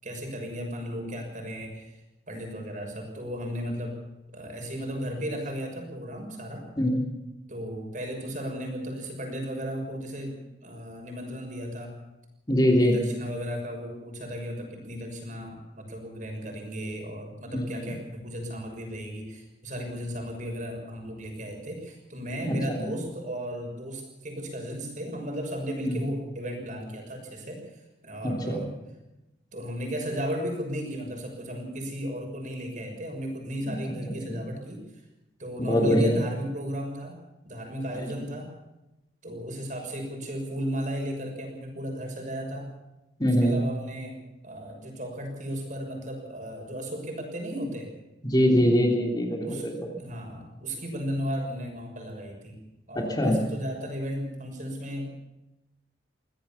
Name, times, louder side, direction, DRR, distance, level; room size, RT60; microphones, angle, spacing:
voice 1, 0.0-1.9 2.3-4.0 4.3-6.6 7.5-12.0 12.6-27.6 28.0-28.7 29.5-34.8 35.4-37.2 37.4-38.5 39.2-42.7 43.4-44.2 44.4-47.9 49.4-49.6 50.0-52.6 52.9-55.1, equal, 45° right, 3 dB, 6.3 m, -35 dB
voice 2, 12.5-13.0 17.5-17.9 22.5-22.8 25.8-26.0 28.2-28.6 34.3-34.4 35.6-36.1 38.0-38.1 43.2-43.6 48.2-49.9 52.9-53.4, equal, 20° left, 1 dB, 3.3 m, -23 dB
23.0 x 16.5 x 7.2 m, 0.96 s
head